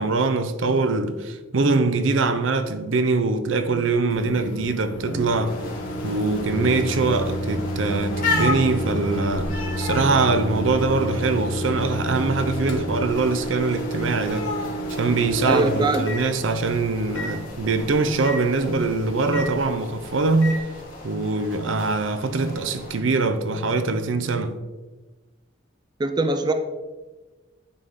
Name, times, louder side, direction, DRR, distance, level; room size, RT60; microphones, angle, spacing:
voice 1, 0.0-5.6 6.0-14.5 14.9-20.6 21.0-24.6, right 3 dB, 75° right, 0.6 m, -23 dB
Microwave oven, 4.1-20.6, equal, 65° left, 0.7 m, -31 dB
sound 1, 5.4-23.0, left 2 dB, 45° left, 2.1 m, -35 dB
voice 2, 15.4-16.0 26.0-26.5, right 2 dB, 20° right, 0.4 m, -22 dB
9.7 x 4.1 x 3.6 m
head